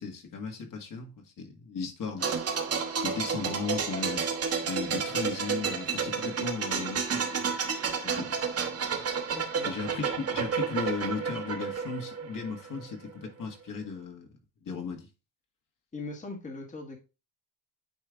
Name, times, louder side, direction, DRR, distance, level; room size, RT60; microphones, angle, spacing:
voice 1, 0.0-2.3 3.0-7.4 8.0-8.4 9.6-14.3 14.6-15.1, left 5 dB, 45° left, 1.7 m, -36 dB
sound 1, 2.2-12.8 13.1-13.3, right 6 dB, 30° right, 1.1 m, -31 dB
voice 2, 9.3-9.7 15.9-17.0, left 3 dB, 15° left, 1.3 m, -40 dB
8.9 x 3.3 x 3.7 m
cardioid pair, 130°, 45 cm